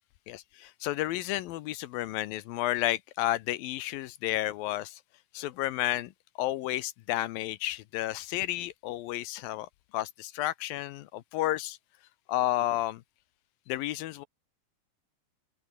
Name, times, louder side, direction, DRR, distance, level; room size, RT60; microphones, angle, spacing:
voice 1, 0.3-5.0 5.3-6.1 6.4-11.8 12.3-13.0 13.7-14.3, left 15 dB, 80° left, 2.5 m, -31 dB
open air
omnidirectional pair, 4.3 m